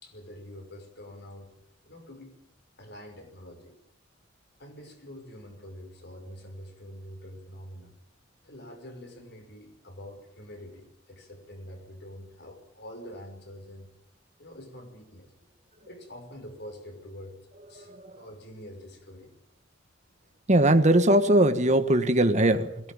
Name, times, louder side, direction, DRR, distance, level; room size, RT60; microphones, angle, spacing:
voice 1, 0.0-1.6 1.8-2.4 2.8-3.8 4.6-7.9 8.4-13.9 14.4-15.3 15.9-17.4 17.7-19.3, equal, 60° left, 5 dB, 5.9 m, -45 dB
voice 2, 17.7-18.1 20.5-22.9, right 1 dB, 35° right, 8 dB, 1.6 m, -21 dB
22.0 x 17.5 x 8.9 m, 0.80 s
head